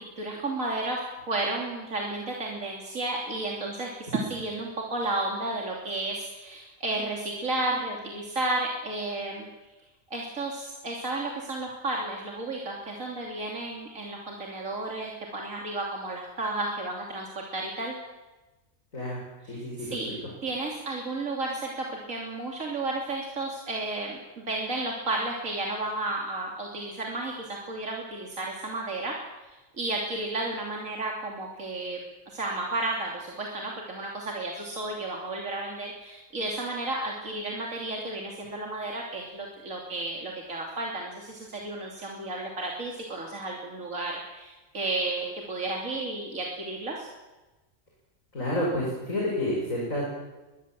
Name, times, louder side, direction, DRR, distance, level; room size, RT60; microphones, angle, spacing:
voice 1, 0.2-9.5 10.1-17.9 19.5-20.1 20.4-29.1 29.8-32.0 32.3-47.1, right 2 dB, 75° right, -1 dB, 3.3 m, -32 dB
voice 2, 19.4-20.3 48.3-50.0, left 1 dB, 85° left, -3 dB, 6.3 m, -30 dB
22.5 x 21.5 x 7.6 m, 1.1 s
omnidirectional pair, 1.4 m